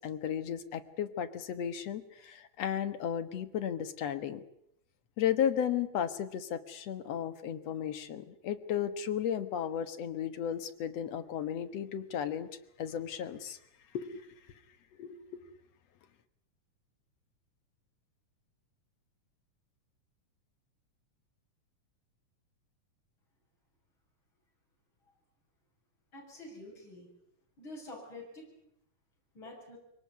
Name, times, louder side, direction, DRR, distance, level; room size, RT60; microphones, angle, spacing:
voice 1, 0.0-4.4 5.2-12.5 12.8-13.6 13.9-14.3 15.0-15.4, left 9 dB, 65° left, 9 dB, 2.4 m, -34 dB
voice 2, 26.1-27.1 27.6-28.5 29.3-29.8, left 1 dB, 40° left, -1 dB, 7.7 m, -47 dB
23.5 x 19.0 x 9.5 m, 0.75 s
omnidirectional pair, 3.4 m